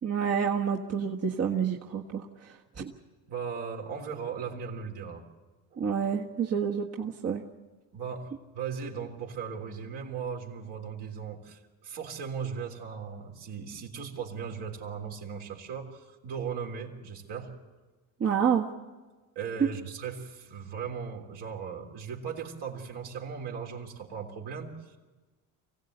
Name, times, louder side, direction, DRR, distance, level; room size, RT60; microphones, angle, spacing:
voice 1, 0.0-2.8 5.8-7.4 18.2-18.7, right 7 dB, 35° right, 0 dB, 1.5 m, -29 dB
voice 2, 3.3-5.2 5.7-5.8 7.9-17.5 19.4-25.0, right 6 dB, 65° right, 0 dB, 3.6 m, -38 dB
24.0 x 16.0 x 8.1 m, 1.3 s
supercardioid pair, 80°, 44 cm